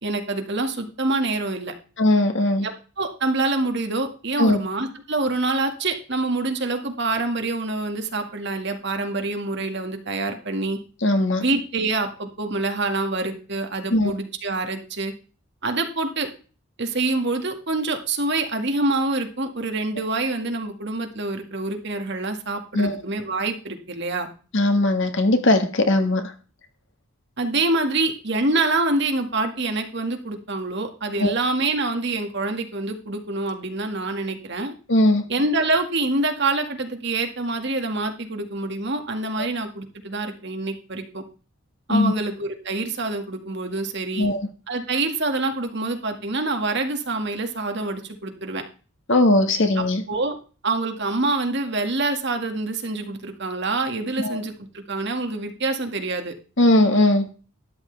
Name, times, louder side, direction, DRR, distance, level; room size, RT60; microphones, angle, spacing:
voice 1, 0.0-1.7 2.6-10.8 11.4-15.1 15.6-16.3 16.8-24.3 27.4-34.7 35.3-41.2 41.9-44.3 44.7-48.6 50.1-50.4 50.6-56.3, right 2 dB, 55° right, 5 dB, 2.0 m, -26 dB
voice 2, 2.0-2.7 4.4-4.6 11.0-11.4 13.9-14.1 22.7-23.0 24.5-26.3 31.2-31.3 34.9-35.3 39.4-39.5 41.9-42.1 44.2-44.5 49.1-50.0 54.2-54.4 56.6-57.3, left 1 dB, 60° left, 6 dB, 1.8 m, -19 dB
13.0 x 10.0 x 3.4 m, 0.37 s
head